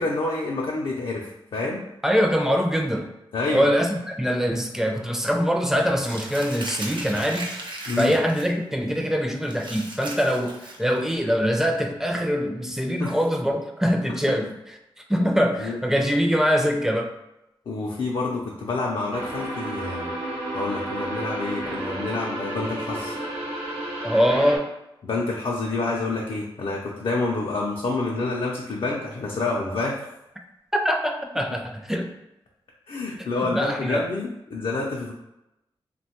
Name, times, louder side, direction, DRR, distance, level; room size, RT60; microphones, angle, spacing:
voice 1, 0.0-1.8 3.3-3.7 7.9-8.1 13.0-13.1 15.2-15.3 15.6-15.8 17.7-20.1 20.5-23.2 25.0-30.0 32.9-35.1, left 3 dB, 70° left, -3 dB, 0.5 m, -28 dB
voice 2, 2.0-3.1 3.5-7.5 8.0-14.5 15.1-17.1 24.0-24.7 30.8-32.1 33.2-34.0, equal, 5° right, 2 dB, 0.4 m, -23 dB
Crumpling crinkling, 6.0-8.5 8.9-9.0 9.4-11.1, right 2 dB, 55° right, 0.6 m, -37 dB
sound 1, 19.1-24.6, right 1 dB, 90° right, 0.8 m, -31 dB
3.0 x 2.2 x 2.9 m, 0.90 s
cardioid pair, 70°, 9 cm